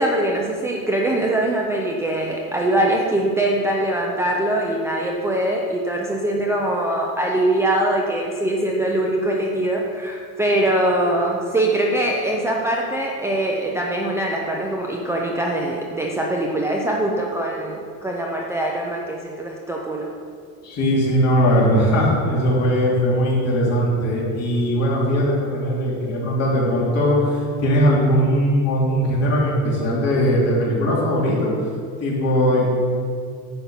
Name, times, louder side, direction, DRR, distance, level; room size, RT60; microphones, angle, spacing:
voice 1, 0.0-20.1, right 1 dB, 10° right, -2 dB, 0.5 m, -22 dB
voice 2, 20.6-31.5 32.0-32.7, equal, 50° left, -4 dB, 2.9 m, -19 dB
10.0 x 5.5 x 7.3 m, 2.2 s
cardioid pair, 180°, 34 cm